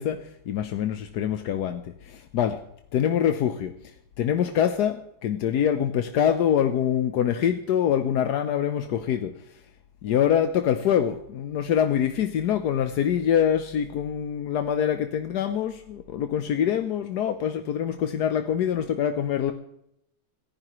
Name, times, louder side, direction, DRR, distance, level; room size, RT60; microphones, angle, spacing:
voice 1, 0.0-2.6 2.9-3.7 4.2-9.4 10.0-19.5, left 9 dB, 65° left, 8 dB, 1.1 m, -25 dB
28.0 x 11.0 x 3.1 m, 0.77 s
omnidirectional pair, 2.4 m